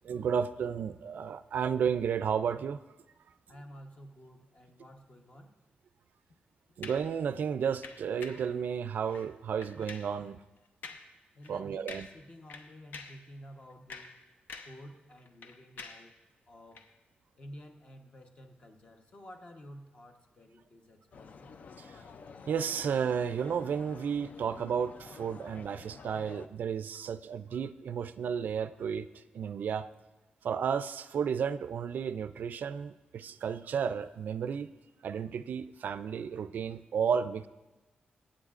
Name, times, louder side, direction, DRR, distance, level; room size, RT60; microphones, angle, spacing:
voice 1, 0.1-2.8 6.8-10.4 11.5-12.1 22.5-29.1 29.3-29.9 30.4-34.7 35.0-37.5, right 7 dB, 65° right, 13 dB, 0.4 m, -32 dB
voice 2, 3.5-5.5 11.3-14.2 14.6-16.1 16.5-16.9 17.4-21.5, equal, 35° left, 4 dB, 1.1 m, -51 dB
sound 1, 6.8-7.1 7.8-8.5 9.1-9.3 9.6-10.2 10.8-11.1 11.4-11.6 11.9-12.2 12.5-13.2 13.7-14.8 15.1-16.1 16.7-16.9, left 4 dB, 70° left, 0.8 m, -47 dB
sound 2, 21.1-26.5, left 5 dB, 50° left, 0.4 m, -50 dB
22.0 x 8.8 x 2.5 m, 1.1 s
wide cardioid pair, 155°, 3 cm